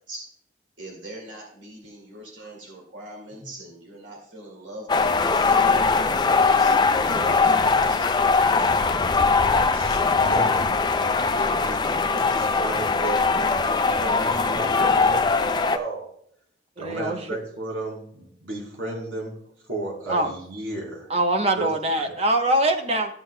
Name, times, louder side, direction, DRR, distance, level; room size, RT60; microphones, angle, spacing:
voice 1, 0.8-5.9 6.3-8.7, right 1 dB, 65° right, -1 dB, 2.2 m, -42 dB
sound 1, 4.9-15.8, left 4 dB, 20° left, 0.3 m, -21 dB
voice 2, 7.0-7.8 16.8-17.4 20.1-20.3 21.1-23.1, right 1 dB, 30° right, 4 dB, 0.9 m, -24 dB
voice 3, 9.5-10.6 11.3-16.1 16.8-19.3 19.7-21.1 21.6-21.7 22.0-22.1, right 2 dB, 90° right, -2 dB, 3.6 m, -34 dB
13.5 x 7.7 x 2.2 m, 0.66 s
head